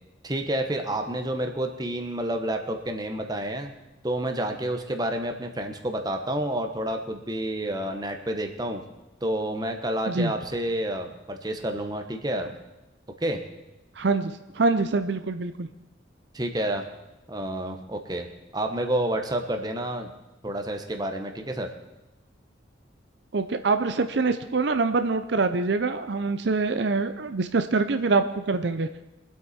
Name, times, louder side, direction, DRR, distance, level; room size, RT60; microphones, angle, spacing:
voice 1, 0.2-3.7 4.0-8.8 9.2-12.5 13.2-13.4 16.3-16.8 17.3-20.1 20.4-21.7, right 1 dB, 20° right, 4 dB, 1.1 m, -29 dB
voice 2, 14.0-15.7 23.3-28.9, right 3 dB, 65° right, 9 dB, 0.6 m, -25 dB
23.5 x 8.4 x 4.3 m, 1.0 s
head